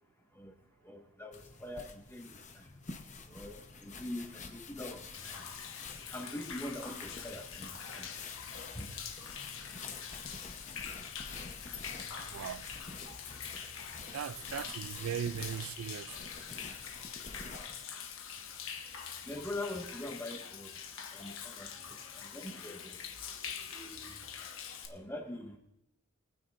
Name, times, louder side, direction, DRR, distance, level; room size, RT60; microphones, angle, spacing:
voice 1, 0.8-2.7 3.3-5.5 6.1-8.1 8.8-8.9 19.2-20.7 21.1-23.0 23.7-24.2 24.9-25.6, left 1 dB, 10° left, 1.9 m, -43 dB
sound 1, 1.3-17.8, left 4 dB, 35° left, 0.9 m, -49 dB
Human voice / Rain / Stream, 5.1-24.9, left 7 dB, 70° left, 1.3 m, -44 dB
voice 2, 12.3-12.7 14.1-16.3, right 8 dB, 70° right, 0.3 m, -38 dB
23.0 x 9.5 x 2.6 m
head